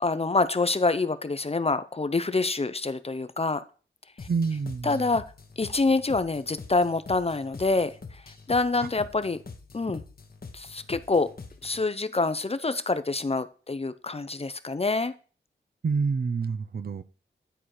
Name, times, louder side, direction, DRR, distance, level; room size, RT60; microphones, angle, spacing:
voice 1, 0.0-3.6 4.8-5.2 5.6-7.9 8.5-9.4 9.7-10.0 10.5-11.3 11.6-15.1, left 3 dB, 30° left, 0.6 m, -26 dB
sound 1, 4.2-11.9, left 4 dB, 50° left, 1.2 m, -45 dB
voice 2, 4.3-5.0 8.8-8.9 15.8-17.0, right 5 dB, 50° right, 0.6 m, -28 dB
10.0 x 4.2 x 4.8 m
cardioid pair, 50°, 20 cm